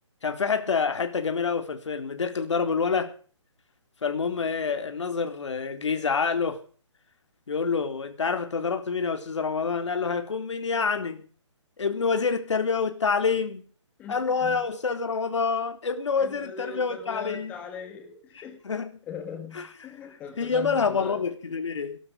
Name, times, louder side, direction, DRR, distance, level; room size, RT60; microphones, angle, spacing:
voice 1, 0.2-3.1 4.0-6.6 7.5-11.3 11.8-13.7 14.1-17.5 18.6-18.9 19.6-19.7 20.4-22.0, left 5 dB, 65° left, 3.8 m, -27 dB
voice 2, 14.0-14.6 16.2-18.6 19.1-21.2, left 6 dB, 10° left, 1.8 m, -40 dB
18.5 x 12.0 x 5.2 m
hypercardioid pair, 175°, 16 cm